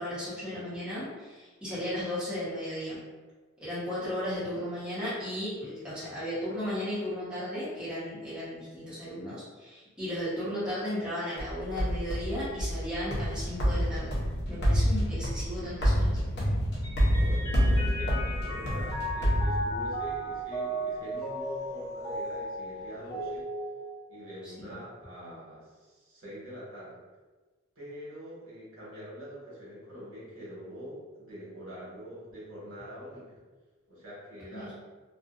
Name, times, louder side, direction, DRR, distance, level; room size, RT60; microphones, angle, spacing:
voice 1, 0.0-3.0 3.6-14.1 14.5-16.1 24.4-24.7 34.5-34.7, left 1 dB, 5° right, -12 dB, 1.0 m, -35 dB
sound 1, 11.4-20.2, equal, 55° left, 0.7 m, -28 dB
Mallet percussion, 16.8-24.6, right 1 dB, 20° left, 0.4 m, -36 dB
voice 2, 17.1-23.4 24.1-27.0 27.7-33.3 33.9-34.7, equal, 80° right, -8 dB, 1.2 m, -44 dB
2.5 x 2.4 x 2.4 m, 1.3 s
head